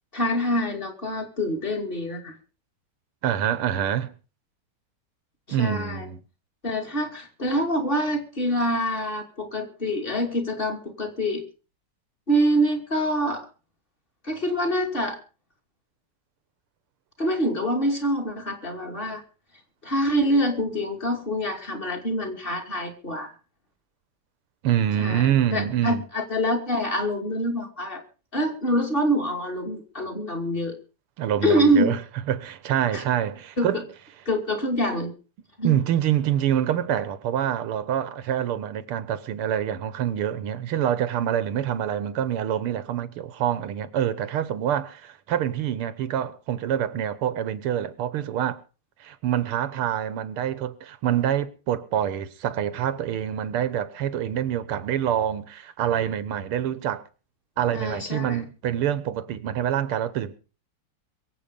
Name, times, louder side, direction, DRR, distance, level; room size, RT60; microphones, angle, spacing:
voice 1, 0.1-2.4 5.5-6.1 6.6-11.4 12.3-13.5 14.2-15.2 17.2-19.2 19.8-23.3 25.0-28.0 28.3-30.8 31.4-32.0 32.9-33.0 33.6-33.8 34.3-35.1 35.6-35.7 57.7-58.4, equal, 25° left, 2.7 m, -25 dB
voice 2, 3.2-4.1 5.5-6.2 24.6-26.0 31.2-32.0 32.3-33.8 35.6-48.6 49.0-57.0 57.6-60.4, right 10 dB, 90° right, 2.0 m, -26 dB
23.0 x 8.2 x 5.2 m
omnidirectional pair, 2.4 m